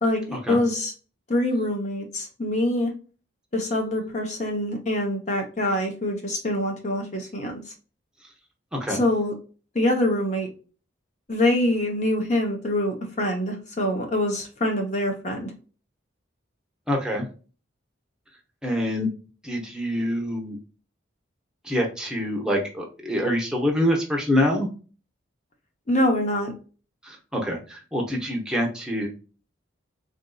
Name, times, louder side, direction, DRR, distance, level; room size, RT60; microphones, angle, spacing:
voice 1, 0.0-0.9 1.3-2.9 3.5-7.6 8.9-9.3 9.7-10.5 11.3-15.5 25.9-26.5, left 1 dB, 35° left, 3 dB, 0.7 m, -25 dB
voice 2, 16.9-17.2 18.6-19.1 19.4-20.6 21.6-24.7 27.0-29.1, equal, 5° right, -1 dB, 0.8 m, -25 dB
3.9 x 2.6 x 2.2 m, 0.37 s
head